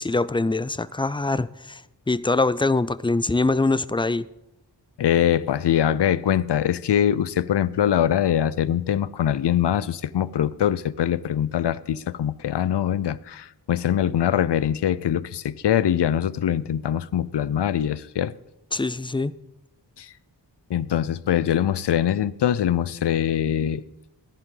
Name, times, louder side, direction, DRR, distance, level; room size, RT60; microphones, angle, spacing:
voice 1, 0.0-1.8 2.1-4.3 18.7-19.3, left 3 dB, 15° left, 0.3 m, -23 dB
voice 2, 5.0-18.3 20.0-20.1 20.7-23.8, left 10 dB, 70° left, 0.5 m, -23 dB
15.0 x 11.0 x 3.8 m
wide cardioid pair, 60°, 43 cm